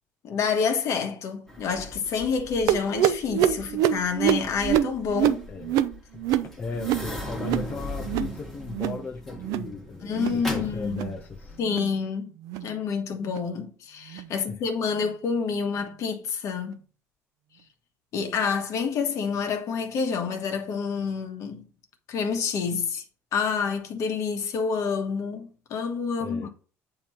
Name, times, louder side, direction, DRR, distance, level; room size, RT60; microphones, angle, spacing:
voice 1, 0.2-5.4 10.0-11.1 11.6-12.3 12.6-16.8 18.1-21.6 22.1-23.0 23.3-26.5, left 5 dB, 60° left, 1.3 m, -28 dB
sound 1, 1.5-11.6, left 1 dB, 5° left, 1.5 m, -39 dB
sound 2, 2.7-7.7 8.0-8.4 8.7-9.0 9.4-9.7 10.1-10.4 10.8-11.2 11.6-11.9 12.4-12.7 13.3-13.5 14.1-14.3 15.0-15.1 15.8-15.9, right 11 dB, 80° right, 0.5 m, -26 dB
voice 2, 5.5-6.3 6.6-11.6 14.3-14.6 26.2-26.5, left 4 dB, 30° left, 0.6 m, -37 dB
8.6 x 2.9 x 4.4 m
cardioid pair, 120°, 6 cm